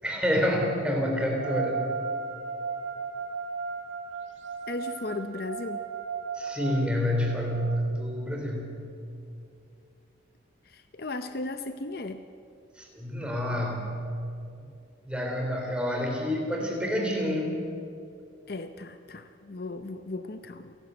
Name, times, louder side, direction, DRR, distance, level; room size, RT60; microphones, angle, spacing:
voice 1, 0.0-1.9 6.3-8.9 12.8-13.9 15.0-17.6, equal, 5° right, 0 dB, 3.3 m, -28 dB
sound 1, 1.4-7.8, right 4 dB, 90° right, 1.9 m, -35 dB
voice 2, 4.7-5.8 10.7-12.3 18.5-20.8, left 2 dB, 50° left, 9 dB, 0.7 m, -36 dB
28.5 x 12.0 x 8.0 m, 2.5 s
head